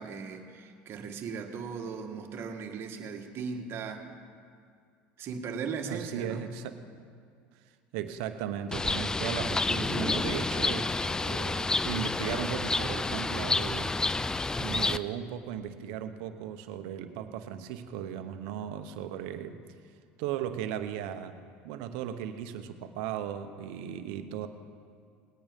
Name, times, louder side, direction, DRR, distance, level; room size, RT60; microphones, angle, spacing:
voice 1, 0.0-4.2 5.2-6.4, right 5 dB, 50° right, 4 dB, 1.6 m, -38 dB
voice 2, 5.8-6.8 7.9-13.9 14.6-19.6 20.2-21.4 21.6-24.5, right 9 dB, 75° right, 9 dB, 1.0 m, -36 dB
Bird, 8.7-15.0, left 3 dB, 10° left, 0.4 m, -29 dB
19.5 x 8.9 x 5.3 m, 2.2 s
supercardioid pair, 90°, 5 cm